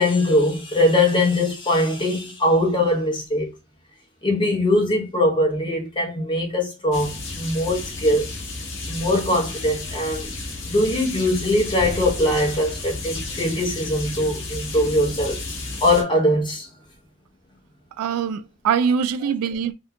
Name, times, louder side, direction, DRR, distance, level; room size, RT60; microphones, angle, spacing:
voice 1, 0.0-3.5 4.2-8.3 8.9-10.3 10.6-15.4 15.8-16.7, left 1 dB, 20° left, 0.9 m, -21 dB
sound 1, 6.9-16.0, left 2 dB, 60° left, 0.9 m, -32 dB
voice 2, 18.0-19.7, right 7 dB, 85° right, 0.3 m, -23 dB
3.7 x 2.7 x 2.2 m
head